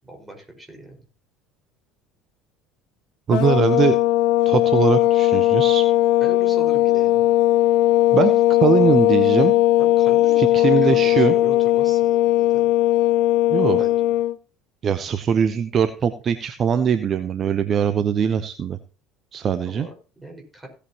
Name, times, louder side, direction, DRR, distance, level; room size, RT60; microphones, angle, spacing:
voice 1, 0.0-1.0 6.2-7.3 9.8-12.7 13.8-14.1 19.7-20.7, right 1 dB, 10° right, 2 dB, 5.0 m, -39 dB
sound 1, 3.3-14.4, left 15 dB, 60° left, 0.6 m, -18 dB
voice 2, 3.3-4.0 4.5-5.9 8.1-9.5 10.4-11.3 13.5-13.8 14.8-18.8 19.3-19.9, right 7 dB, 40° right, 11 dB, 0.7 m, -21 dB
16.5 x 8.4 x 2.9 m, 0.35 s
figure-of-eight pair, 65°, 0 cm